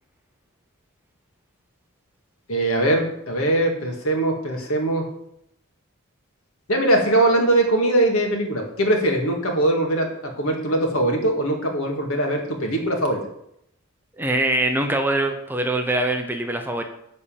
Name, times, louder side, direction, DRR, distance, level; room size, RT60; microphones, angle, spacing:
voice 1, 2.5-5.1 6.7-13.2, right 1 dB, 75° left, 2 dB, 1.9 m, -21 dB
voice 2, 14.2-16.8, right 1 dB, 10° right, 4 dB, 0.7 m, -23 dB
10.0 x 4.2 x 7.2 m, 0.77 s
head